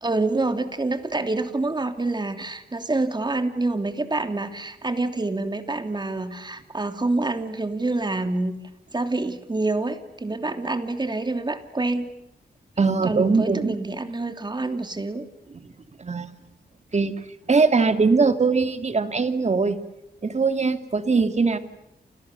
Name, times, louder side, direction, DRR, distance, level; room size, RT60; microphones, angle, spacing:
voice 1, 0.0-8.5 8.9-12.1 13.0-15.3, right 2 dB, 25° right, 7 dB, 2.9 m, -27 dB
voice 2, 12.8-13.8 16.0-16.3 16.9-17.1 17.5-19.8 20.2-21.6, right 4 dB, 40° right, 8 dB, 2.5 m, -21 dB
29.0 x 29.0 x 7.1 m, 0.84 s
wide cardioid pair, 95°, 18 cm